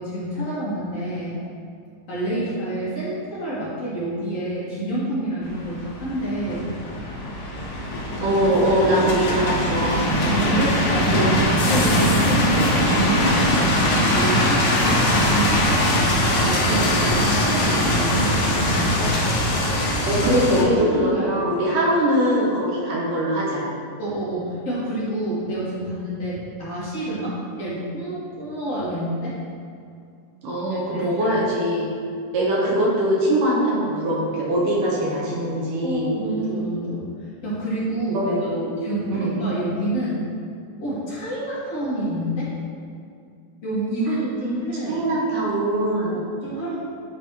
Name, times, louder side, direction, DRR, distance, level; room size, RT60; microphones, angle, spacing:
voice 1, 0.0-1.4 2.1-6.7 8.2-8.3 8.8-9.2 10.3-15.8 16.1-19.1 20.6-21.6 24.0-29.3 30.9-31.4 35.8-37.0 37.4-38.3 38.8-40.3 40.8-42.5 43.6-45.0 46.1-46.8, right 1 dB, 45° left, -10 dB, 2.8 m, -28 dB
sound 1, 5.4-20.6, left 1 dB, 70° left, 1.4 m, -21 dB
voice 2, 8.2-9.9 11.1-11.4 20.1-23.7 30.4-31.9 32.3-36.1 38.1-38.7 39.1-39.3 44.4-46.2, right 1 dB, 70° right, -5 dB, 2.7 m, -22 dB
10.0 x 3.9 x 4.9 m, 2.3 s
omnidirectional pair, 4.2 m